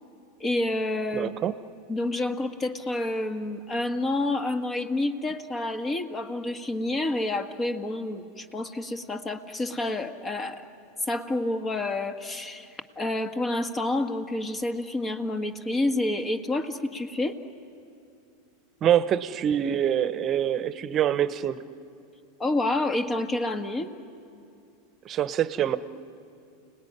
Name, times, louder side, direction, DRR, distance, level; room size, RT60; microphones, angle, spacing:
voice 1, 0.4-1.3 1.9-10.6 11.1-17.4 22.4-23.9, left 2 dB, 25° left, 7 dB, 1.7 m, -29 dB
voice 2, 1.1-1.5 18.8-21.6 25.0-25.8, right 10 dB, 35° right, 13 dB, 1.1 m, -25 dB
30.0 x 19.5 x 9.7 m, 2.5 s
hypercardioid pair, 105°, 0 cm